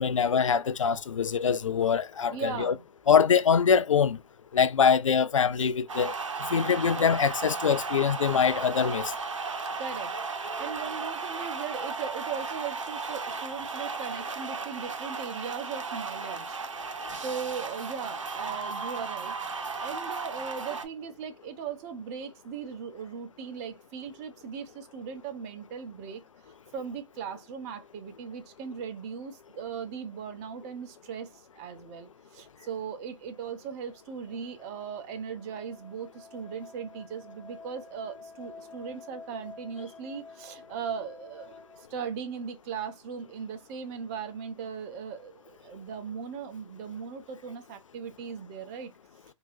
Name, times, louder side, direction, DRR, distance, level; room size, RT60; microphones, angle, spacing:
voice 1, 0.0-2.7 3.1-4.2 4.5-6.1 6.5-9.1, left 6 dB, 80° left, 0.4 m, -24 dB
voice 2, 2.3-2.8 9.8-48.9, right 6 dB, 35° right, 0.9 m, -38 dB
sound 1, 5.9-20.9, right 4 dB, 80° right, 0.9 m, -35 dB
sound 2, 33.6-41.9, left 4 dB, 5° left, 0.3 m, -50 dB
3.8 x 2.9 x 2.6 m
figure-of-eight pair, 120°, 16 cm